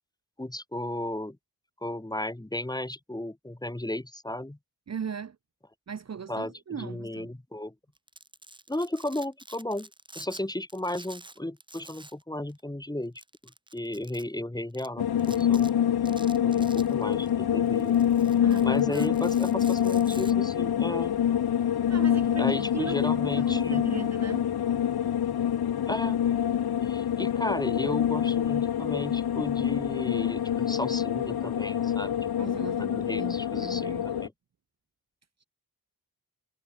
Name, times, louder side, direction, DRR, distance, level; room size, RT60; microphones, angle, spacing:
voice 1, 0.4-1.4 1.8-4.6 6.3-7.7 8.7-9.9 10.2-13.1 13.7-15.7 16.4-18.0 18.6-21.1 22.4-23.8 25.9-26.2 26.8-34.3, left 1 dB, 10° left, 2.4 m, -34 dB
voice 2, 4.9-5.4 5.9-7.3 18.4-19.1 21.9-25.2 32.4-34.1, right 7 dB, 40° right, 0.7 m, -39 dB
Domestic sounds home sounds, 7.9-10.4 10.7-12.2 12.5-12.6 13.2-14.2 14.7-14.9 15.2-15.7 16.1-17.3 17.7-20.3, right 2 dB, 10° right, 1.5 m, -48 dB
sound 1, 15.0-34.3, left 9 dB, 70° left, 0.8 m, -26 dB
wide cardioid pair, 115°, 39 cm